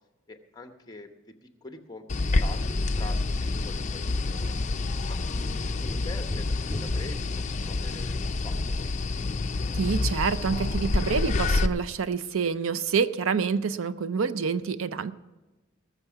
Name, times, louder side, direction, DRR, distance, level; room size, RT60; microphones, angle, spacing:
voice 1, 0.3-1.1 1.4-2.1 2.4-4.5 5.1-8.9, left 2 dB, 20° left, 6 dB, 0.9 m, -44 dB
sound 1, 2.1-11.7, left 3 dB, 35° left, 0.5 m, -28 dB
Tap, 2.7-8.0 10.6-10.7, left 1 dB, ahead, 1.6 m, -41 dB
voice 2, 9.7-15.1, right 5 dB, 85° right, 14 dB, 0.5 m, -27 dB
19.0 x 7.1 x 5.7 m, 1.1 s
head